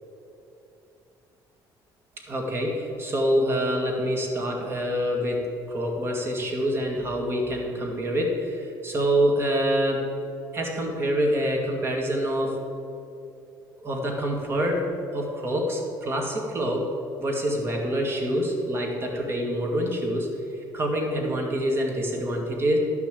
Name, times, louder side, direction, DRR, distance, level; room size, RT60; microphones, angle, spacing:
voice 1, 2.3-10.1 10.5-12.6 13.8-14.9 15.1-16.9 17.2-20.3 20.5-22.8, equal, 30° right, 1 dB, 2.0 m, -26 dB
11.5 x 5.9 x 7.5 m, 2.8 s
cardioid pair, 145°, 9 cm